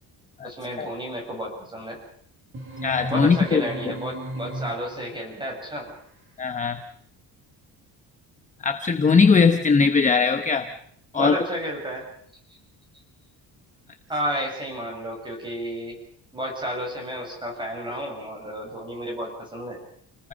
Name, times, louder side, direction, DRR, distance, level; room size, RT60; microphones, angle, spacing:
voice 1, 0.4-2.0 3.1-5.9 11.1-12.1 14.1-16.0 16.3-19.8, equal, 10° right, 1 dB, 7.2 m, -31 dB
sound 1, 2.5-5.2, right 1 dB, 30° right, 7.1 m, -34 dB
voice 2, 2.8-3.6 6.4-6.8 8.6-10.7 11.1-11.3, left 5 dB, 20° left, 7 dB, 1.0 m, -19 dB
30.0 x 20.0 x 5.3 m, 0.64 s
cardioid pair, 175°, 40 cm